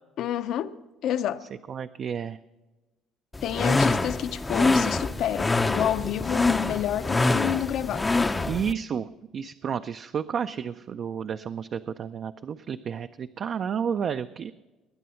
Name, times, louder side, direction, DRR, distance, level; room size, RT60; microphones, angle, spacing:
voice 1, 0.2-0.8 1.0-1.4 3.4-8.1, left 10 dB, 55° left, 0.7 m, -29 dB
voice 2, 1.7-2.4 8.5-14.5, right 7 dB, 40° right, 0.4 m, -31 dB
sound 1, 3.3-8.7, left 3 dB, 15° left, 0.5 m, -25 dB
20.0 x 9.3 x 5.7 m
cardioid pair, 155°, 0 cm